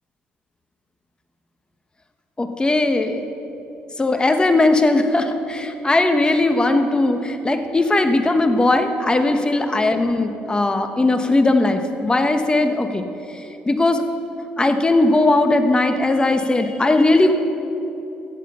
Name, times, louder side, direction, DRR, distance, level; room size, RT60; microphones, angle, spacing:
voice 1, 2.4-3.3 4.0-13.0 13.7-14.0 14.6-17.3, left 2 dB, 20° left, 7 dB, 1.1 m, -18 dB
15.0 x 7.6 x 5.6 m, 2.9 s
supercardioid pair, 70°, 4 cm